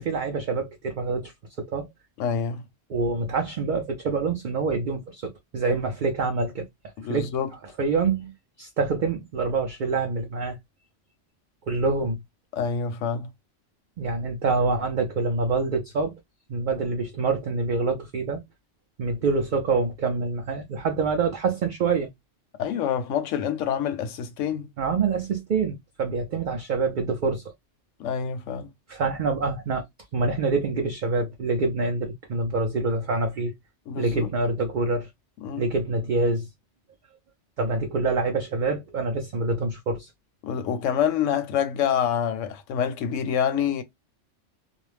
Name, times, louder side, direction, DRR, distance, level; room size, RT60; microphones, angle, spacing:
voice 1, 0.0-1.3 1.6-1.9 2.9-6.6 7.1-7.3 7.8-8.3 8.6-10.6 11.7-12.2 14.0-16.1 16.5-18.4 19.0-22.1 24.8-27.5 28.9-29.8 30.1-33.5 34.0-35.1 35.6-36.5 37.6-40.1, right 4 dB, 55° right, 0.5 m, -26 dB
voice 2, 2.2-2.6 7.0-7.5 12.5-13.3 22.6-24.7 28.0-28.7 33.9-34.3 35.4-35.6 40.4-43.8, left 8 dB, 85° left, 1.0 m, -26 dB
2.5 x 2.1 x 3.1 m
omnidirectional pair, 1.3 m